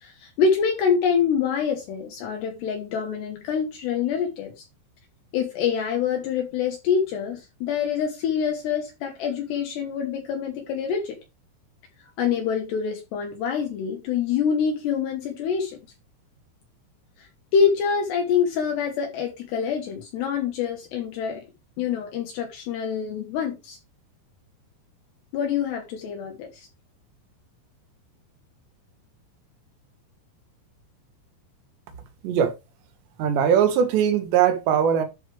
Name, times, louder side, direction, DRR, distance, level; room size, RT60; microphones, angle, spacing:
voice 1, 0.0-4.7 5.3-11.2 12.2-15.8 17.2-21.4 21.8-23.8 25.3-26.7, left 7 dB, 70° left, 3.3 m, -26 dB
voice 2, 32.2-32.6 33.2-35.1, right 8 dB, 70° right, 3.6 m, -20 dB
11.5 x 5.5 x 3.3 m
omnidirectional pair, 5.4 m